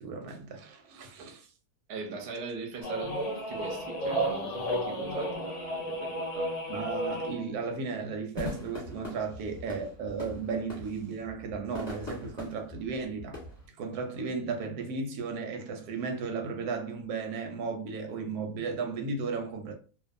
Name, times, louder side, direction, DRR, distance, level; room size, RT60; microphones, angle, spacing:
voice 1, 0.0-1.5 6.7-13.4 13.8-19.7, right 4 dB, 85° right, 1.1 m, -35 dB
voice 2, 1.9-3.2 3.5-6.6, right 4 dB, 50° right, 0.7 m, -40 dB
sound 1, 2.8-7.5, equal, 60° left, 0.4 m, -32 dB
sound 2, 8.3-13.7, left 2 dB, 15° left, 1.1 m, -42 dB
2.5 x 2.2 x 2.5 m
omnidirectional pair, 1.6 m